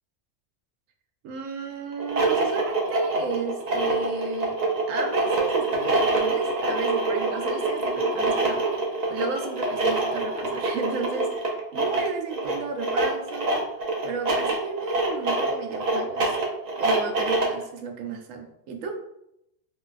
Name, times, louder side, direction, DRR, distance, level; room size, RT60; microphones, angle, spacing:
voice 1, 1.2-4.6 4.9-13.7 14.0-16.4 16.8-19.0, right 4 dB, 80° right, 4 dB, 0.9 m, -33 dB
sound 1, 1.9-17.6, right 2 dB, 55° right, 0.4 m, -25 dB
3.9 x 2.3 x 2.4 m, 0.81 s
omnidirectional pair, 1.3 m